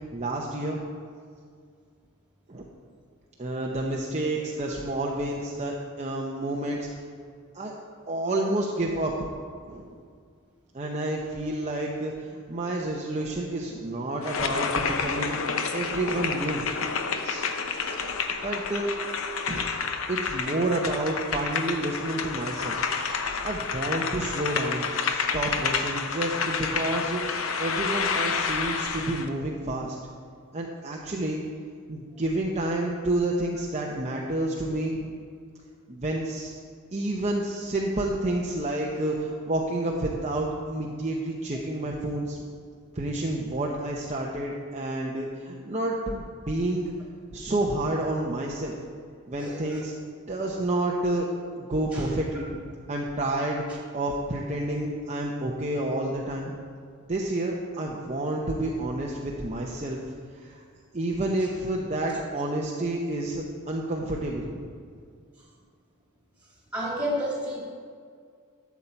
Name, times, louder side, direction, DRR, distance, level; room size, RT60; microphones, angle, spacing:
voice 1, 0.1-0.8 2.5-2.6 3.4-6.9 7.5-7.8 8.1-9.1 9.7-10.0 10.7-15.3 15.7-16.7 17.2-17.5 18.4-18.9 19.5-19.7 20.1-22.9 23.4-27.2 27.6-30.0 30.5-31.4 31.9-35.1 35.9-36.6 36.9-42.4 42.9-46.9 47.3-48.8 49.3-49.9 50.3-51.3 51.6-52.6 52.9-56.6 57.0-60.0 60.4-60.6 60.9-64.7, right 1 dB, 30° right, -2 dB, 0.8 m, -29 dB
sound 1, 14.2-29.3, left 5 dB, 70° left, 0.7 m, -29 dB
voice 2, 19.4-19.8 49.4-49.8 51.9-52.1 66.7-67.6, equal, 5° right, -4 dB, 2.5 m, -31 dB
12.0 x 7.2 x 4.4 m, 2.1 s
head